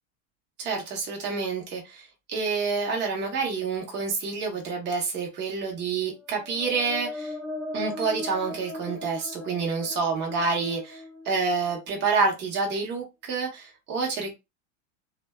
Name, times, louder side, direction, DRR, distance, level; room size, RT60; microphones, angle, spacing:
voice 1, 0.6-7.3 7.7-14.3, right 4 dB, 25° right, 0.8 m, -28 dB
sound 1, 6.2-12.0, left 2 dB, ahead, 0.6 m, -38 dB
2.5 x 2.1 x 2.2 m
hypercardioid pair, 115°, 40 cm